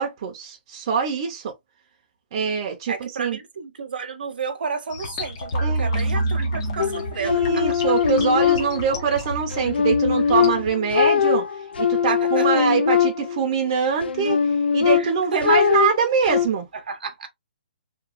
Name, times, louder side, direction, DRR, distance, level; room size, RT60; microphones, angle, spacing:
voice 1, 0.0-1.5 2.3-3.4 5.6-5.9 6.4-6.5 7.2-11.4 11.8-14.4 14.7-16.7, right 6 dB, 30° right, 0.5 m, -24 dB
voice 2, 2.9-7.7 12.0-12.6 14.9-15.7 16.7-17.3, right 5 dB, 65° right, 0.8 m, -32 dB
sound 1, 4.9-10.7, right 1 dB, 30° left, 0.5 m, -28 dB
sound 2, 6.8-9.1 9.5-13.5 14.0-16.5, left 7 dB, 80° left, 0.5 m, -21 dB
2.9 x 2.2 x 2.3 m
hypercardioid pair, 170°, 5 cm